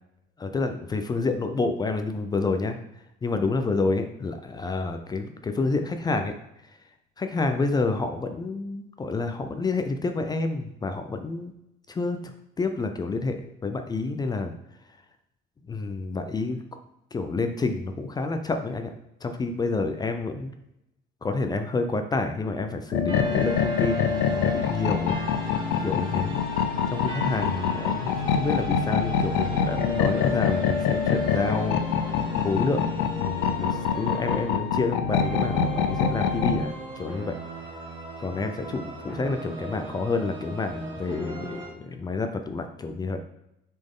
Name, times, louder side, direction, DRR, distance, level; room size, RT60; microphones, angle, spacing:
voice 1, 0.4-2.8 3.2-6.3 7.2-11.5 11.9-14.5 15.7-16.6 17.1-18.9 19.2-20.5 21.2-25.2 25.8-26.4 26.9-37.4 38.2-43.2, left 3 dB, 20° left, 7 dB, 0.5 m, -29 dB
sound 1, 22.9-36.6, left 7 dB, 85° left, 0.6 m, -25 dB
sound 2, 23.1-41.7, right 2 dB, 25° right, 1.4 m, -39 dB
6.4 x 4.3 x 3.6 m, 0.84 s
cardioid pair, 135°, 20 cm